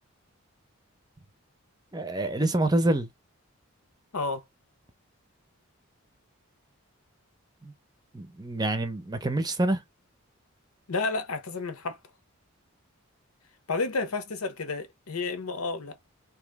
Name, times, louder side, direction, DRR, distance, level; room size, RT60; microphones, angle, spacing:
voice 1, 1.9-3.1 7.6-7.7 8.1-9.8, right 1 dB, 20° right, 0.6 m, -26 dB
voice 2, 4.1-4.4 10.9-12.0 13.7-16.0, left 3 dB, 85° left, 0.9 m, -31 dB
3.0 x 2.9 x 3.5 m
head